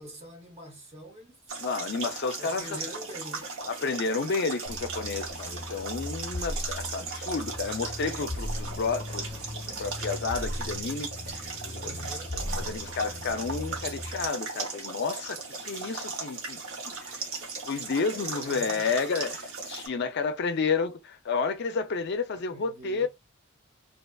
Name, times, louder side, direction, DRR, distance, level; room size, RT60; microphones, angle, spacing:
voice 1, 0.0-1.6 2.4-3.5 11.7-12.3 18.1-19.0 22.3-23.1, equal, 30° right, 0.8 m, -45 dB
sound 1, 1.5-19.9, right 4 dB, 85° right, 0.9 m, -37 dB
voice 2, 1.6-2.8 3.7-9.3 9.8-12.1 12.3-16.6 17.0-17.2 17.7-23.1, left 4 dB, 55° left, 0.4 m, -31 dB
sound 2, 4.7-14.3, left 1 dB, 20° left, 0.9 m, -38 dB
2.7 x 2.3 x 2.3 m
head